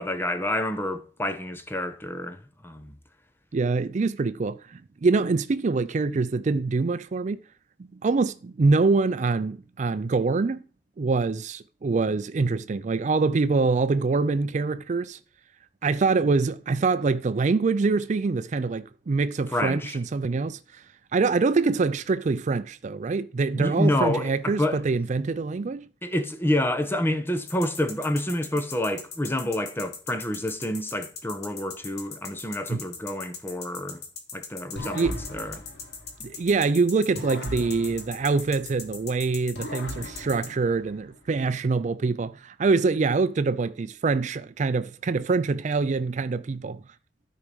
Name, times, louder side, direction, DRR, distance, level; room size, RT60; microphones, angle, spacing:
voice 1, 0.0-2.9 19.5-20.0 23.5-24.8 26.0-34.0 34.3-35.6, left 1 dB, 15° left, 1.0 m, -28 dB
voice 2, 3.5-7.4 8.0-10.6 11.0-15.2 15.8-20.8 21.1-25.9 32.7-32.8 34.9-35.1 36.2-46.8, right 4 dB, 45° right, 0.4 m, -25 dB
sound 1, 27.5-40.5, left 5 dB, 65° left, 2.0 m, -39 dB
sound 2, 34.8-36.6 37.2-39.0 39.5-41.3, left 1 dB, 80° left, 1.8 m, -39 dB
13.0 x 4.7 x 5.3 m
head